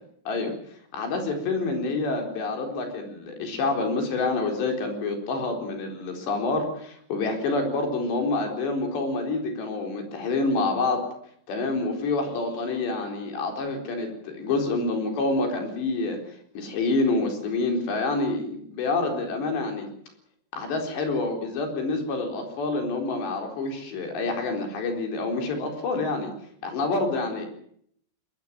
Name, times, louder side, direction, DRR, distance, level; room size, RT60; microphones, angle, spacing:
voice 1, 0.9-11.0 11.5-16.2 16.5-19.9 20.5-26.3 26.6-27.5, left 3 dB, 80° left, 3 dB, 6.4 m, -27 dB
21.5 x 20.5 x 7.5 m, 0.66 s
omnidirectional pair, 4.9 m